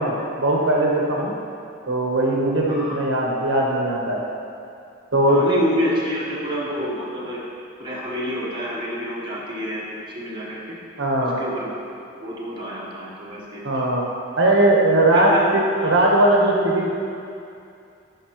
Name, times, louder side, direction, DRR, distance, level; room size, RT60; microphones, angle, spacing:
voice 1, 0.0-1.3 1.9-4.2 5.1-5.4 11.0-11.3 13.6-14.0 14.4-16.9, right 1 dB, 65° right, -2 dB, 1.0 m, -19 dB
voice 2, 2.7-3.0 5.3-7.4 7.8-10.6 11.2-11.8 12.1-13.8 15.1-15.4 15.8-15.9, equal, 25° right, -6 dB, 1.1 m, -28 dB
10.5 x 5.4 x 3.0 m, 2.5 s
head